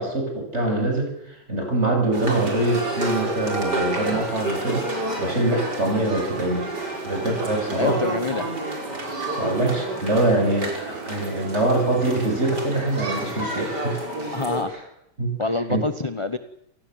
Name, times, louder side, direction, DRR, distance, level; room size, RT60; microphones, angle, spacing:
voice 1, 0.0-4.9 5.2-6.7 7.0-8.0 9.4-14.0 15.2-15.3 15.7-15.8, right 2 dB, 35° right, 2 dB, 8.2 m, -24 dB
sound 1, 2.1-14.6, right 2 dB, 65° right, 5.8 m, -29 dB
voice 2, 7.8-8.5 14.3-14.7 15.4-16.4, left 3 dB, 20° left, 10 dB, 0.8 m, -26 dB
28.0 x 18.5 x 8.0 m, 0.82 s
omnidirectional pair, 1.9 m